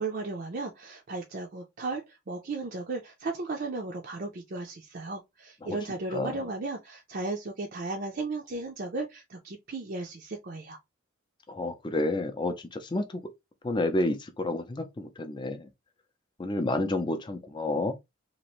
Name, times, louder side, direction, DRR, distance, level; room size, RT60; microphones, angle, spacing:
voice 1, 0.0-10.8, right 3 dB, 50° right, 0.5 m, -35 dB
voice 2, 11.5-13.3 13.6-15.7 16.4-17.9, left 2 dB, 25° left, 0.5 m, -30 dB
2.9 x 2.5 x 3.0 m
head